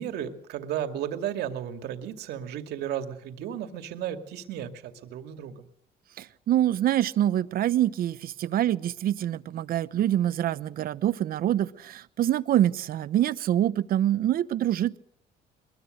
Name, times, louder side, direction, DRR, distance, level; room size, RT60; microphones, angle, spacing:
voice 1, 0.0-5.7, right 10 dB, 75° right, 7 dB, 2.3 m, -34 dB
voice 2, 6.2-15.0, right 12 dB, 60° right, 15 dB, 0.9 m, -25 dB
22.0 x 21.5 x 6.6 m, 0.66 s
cardioid pair, 110°, 17 cm